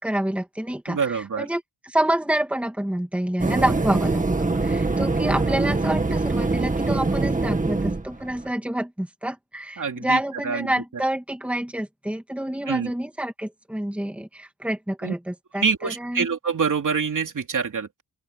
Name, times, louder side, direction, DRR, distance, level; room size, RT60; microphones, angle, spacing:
voice 1, 0.0-16.3, right 1 dB, 5° right, 2.5 m, -28 dB
voice 2, 0.9-1.5 9.8-10.7 12.7-12.9 15.0-15.1 15.5-18.0, right 5 dB, 50° right, 3.0 m, -26 dB
sound 1, 3.4-8.5, right 3 dB, 20° right, 1.9 m, -23 dB
open air
wide cardioid pair, 175°, 40 cm